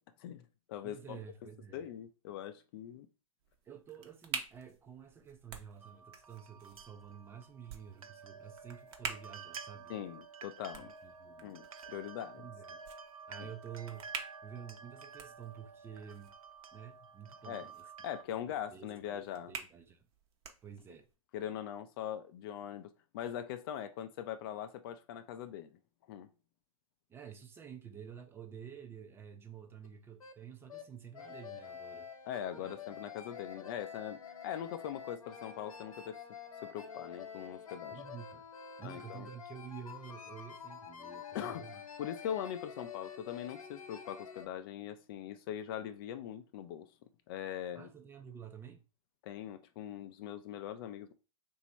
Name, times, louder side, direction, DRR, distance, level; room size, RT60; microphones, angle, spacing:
voice 1, 0.2-1.2 1.7-3.1 9.9-10.9 11.4-12.5 13.4-13.5 17.5-17.7 18.0-19.5 21.3-25.7 26.1-26.3 32.2-34.2 34.4-36.2 36.6-38.0 38.8-39.3 41.3-41.6 42.0-46.9 47.3-47.9 49.2-51.1, left 10 dB, 40° left, 0.5 m, -41 dB
voice 2, 0.8-1.9 3.6-9.9 10.8-11.5 12.4-12.8 13.3-14.1 14.4-16.3 16.7-17.8 18.7-20.0 20.6-21.1 27.1-32.1 32.6-32.7 37.9-38.4 38.8-41.8 47.7-48.8, right 8 dB, 15° right, 0.5 m, -50 dB
sound 1, 3.4-21.1, right 6 dB, 50° right, 0.9 m, -49 dB
sound 2, 5.8-18.2, right 5 dB, 85° right, 0.5 m, -51 dB
sound 3, 29.8-29.9 30.2-30.3 30.7-30.8 31.1-44.5, left 7 dB, 80° left, 0.9 m, -48 dB
3.0 x 2.7 x 4.4 m
hypercardioid pair, 115°, 18 cm